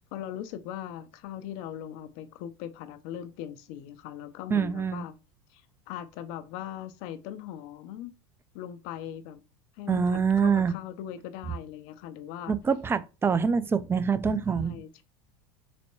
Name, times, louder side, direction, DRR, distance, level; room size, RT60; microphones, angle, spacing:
voice 1, 0.1-5.1 5.5-8.1 8.5-9.4 9.8-12.6 14.5-15.0, left 11 dB, 65° left, 0.7 m, -40 dB
voice 2, 4.5-5.0 9.9-10.7 12.5-14.8, right 6 dB, 15° right, 0.4 m, -25 dB
4.2 x 2.2 x 4.4 m
supercardioid pair, 105°, 14 cm